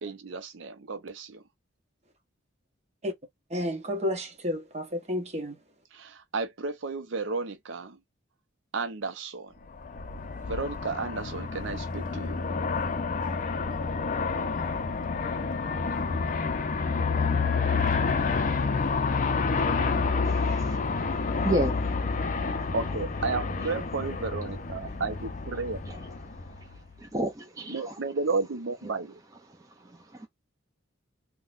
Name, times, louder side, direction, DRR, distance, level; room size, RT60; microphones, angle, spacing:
voice 1, 0.0-1.4 5.9-8.0 8.7-9.5 10.5-12.5 22.7-25.8 27.7-29.2, right 4 dB, 70° right, 0.6 m, -33 dB
voice 2, 3.5-5.6, left 1 dB, 35° right, 1.0 m, -31 dB
Aircraft, 9.7-27.0, left 4 dB, 40° left, 0.5 m, -29 dB
voice 3, 20.3-20.8 21.4-21.7 25.9-26.0 27.0-27.9 30.2-30.3, right 1 dB, 15° right, 0.5 m, -30 dB
3.6 x 2.2 x 2.5 m
head